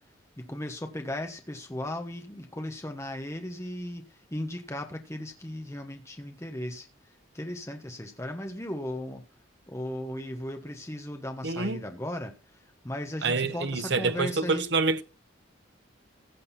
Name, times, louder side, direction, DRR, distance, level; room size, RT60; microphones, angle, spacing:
voice 1, 0.4-6.9 7.3-9.2 9.7-14.6, left 1 dB, 15° left, 1.2 m, -36 dB
voice 2, 11.4-11.8 13.2-15.0, right 3 dB, 55° right, 0.8 m, -27 dB
16.0 x 6.5 x 4.3 m
head